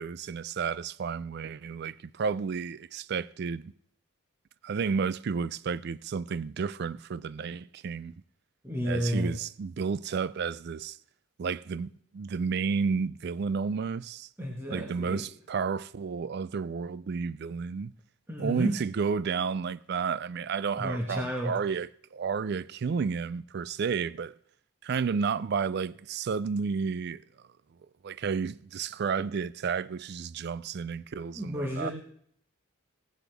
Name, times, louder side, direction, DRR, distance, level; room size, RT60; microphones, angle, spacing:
voice 1, 0.0-3.7 4.6-8.1 8.8-11.0 11.4-14.3 14.7-17.9 18.4-24.3 24.8-27.2 28.0-31.9, right 5 dB, 50° right, 0.3 m, -31 dB
voice 2, 8.6-9.3 14.4-15.2 18.3-18.7 20.8-21.5 31.3-31.9, equal, 10° right, 1.5 m, -31 dB
17.0 x 9.9 x 3.5 m
head